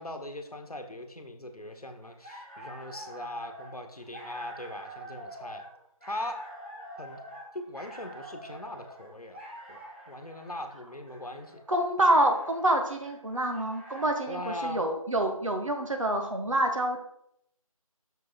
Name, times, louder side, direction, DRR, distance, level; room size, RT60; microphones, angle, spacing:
voice 1, 0.0-5.7 6.0-6.4 7.0-7.2 7.5-9.4 9.7-11.6 14.3-14.8, left 1 dB, 85° left, 6 dB, 1.0 m, -40 dB
sound 1, 2.0-14.5, right 1 dB, 20° right, 1.2 m, -46 dB
voice 2, 11.7-17.0, right 1 dB, 60° right, 4 dB, 1.2 m, -27 dB
6.1 x 4.7 x 3.6 m, 0.71 s
figure-of-eight pair, 160°, 19 cm